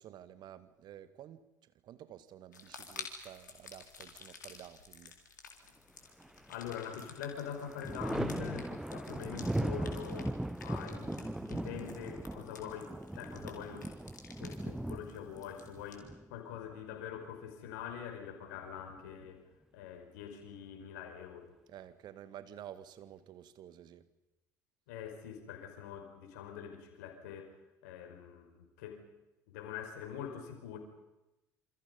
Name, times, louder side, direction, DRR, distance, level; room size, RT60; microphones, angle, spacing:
voice 1, 0.0-5.2 21.7-24.1, right 11 dB, 50° right, 12 dB, 2.0 m, -51 dB
sound 1, 2.5-16.0, left 4 dB, 85° left, 3.8 m, -52 dB
Thunder, 6.2-7.0 7.3-16.9 18.4-19.2, right 1 dB, 5° right, 0.8 m, -39 dB
voice 2, 6.5-10.4 10.6-13.9 14.4-19.4 19.7-21.5 24.9-27.5 27.8-29.0 29.5-30.8, left 8 dB, 65° left, 4 dB, 5.4 m, -44 dB
28.0 x 28.0 x 5.5 m, 0.97 s
figure-of-eight pair, 65°, 10 cm